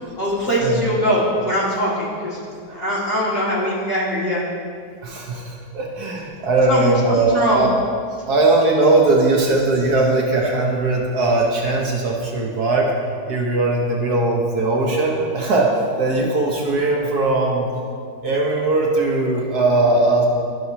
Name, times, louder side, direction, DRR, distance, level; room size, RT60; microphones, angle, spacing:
voice 1, 0.1-2.4 2.7-4.4 6.7-7.6, equal, 35° left, -9 dB, 2.3 m, -21 dB
voice 2, 5.0-7.8 8.3-12.9 13.3-17.7 18.2-20.3, right 2 dB, 65° right, -2 dB, 1.4 m, -19 dB
12.5 x 6.1 x 2.8 m, 2.3 s
omnidirectional pair, 1.9 m